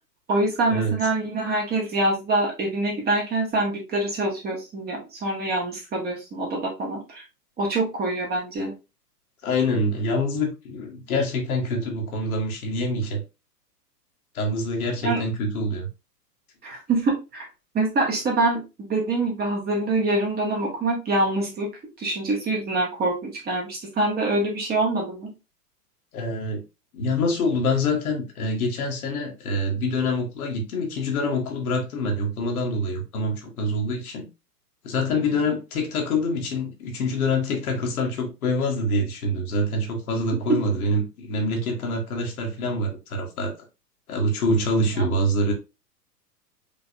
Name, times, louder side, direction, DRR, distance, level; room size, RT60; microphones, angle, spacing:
voice 1, 0.3-7.2 7.6-8.7 15.0-15.2 16.6-17.5 17.7-21.7 22.0-25.3 40.5-40.6 45.0-45.1, right 2 dB, 20° right, 1.6 m, -25 dB
voice 2, 9.4-13.2 14.3-15.9 26.1-26.6 26.9-34.3 34.8-43.5 44.1-45.5, left 1 dB, 60° left, 1.7 m, -25 dB
5.3 x 3.5 x 2.7 m
figure-of-eight pair, 105°, 49 cm